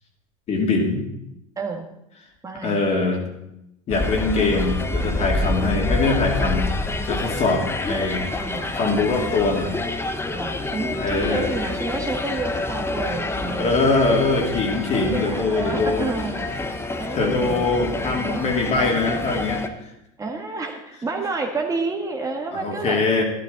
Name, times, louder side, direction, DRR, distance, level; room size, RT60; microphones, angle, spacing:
voice 1, 0.5-1.1 2.6-3.3 3.9-6.7 7.1-8.2 8.7-9.8 11.0-11.5 13.6-16.0 17.1-19.6 22.5-23.2, left 3 dB, 40° left, 1 dB, 2.8 m, -22 dB
voice 2, 1.6-1.9 2.4-2.8 8.0-8.7 10.3-13.8 15.1-16.5 17.0-17.7 18.0-18.7 20.2-23.0, right 3 dB, 20° right, 1 dB, 1.6 m, -30 dB
sound 1, 3.9-19.7, left 2 dB, 15° left, 1.0 m, -27 dB
12.0 x 11.5 x 4.1 m, 0.82 s
hypercardioid pair, 95°, 17 cm